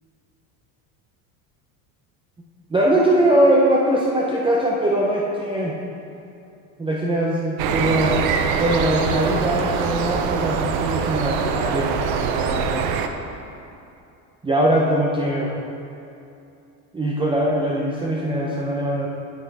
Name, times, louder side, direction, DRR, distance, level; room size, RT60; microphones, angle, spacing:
voice 1, 2.7-5.8 6.8-8.2 8.6-12.7 14.4-15.6 16.9-19.1, right 1 dB, 10° right, -3 dB, 0.6 m, -21 dB
sound 1, 7.6-13.1, right 6 dB, 55° right, 0.7 m, -23 dB
9.0 x 5.9 x 4.7 m, 2.7 s
supercardioid pair, 120°, 45 cm